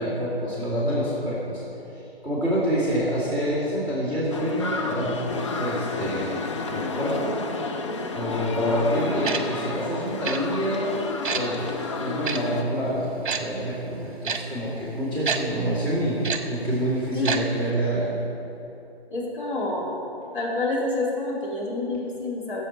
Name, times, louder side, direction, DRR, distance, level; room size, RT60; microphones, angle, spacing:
voice 1, 0.0-1.6 1.9-6.3 6.7-7.4 8.1-11.0 11.3-18.2, equal, 15° left, -9 dB, 2.4 m, -27 dB
sound 1, 4.3-12.6, left 4 dB, 30° left, 0.5 m, -31 dB
Tick-tock, 9.2-9.4 10.2-10.4 11.2-11.4 12.2-12.4 13.3-13.4 14.2-14.4 15.3-15.4 16.2-16.4 17.2-17.4 17.7-17.8, right 6 dB, 55° right, 1.0 m, -26 dB
voice 2, 19.1-19.9 20.3-22.6, left 2 dB, 50° left, -4 dB, 2.8 m, -28 dB
15.0 x 7.7 x 4.4 m, 2.9 s
figure-of-eight pair, 145°, 32 cm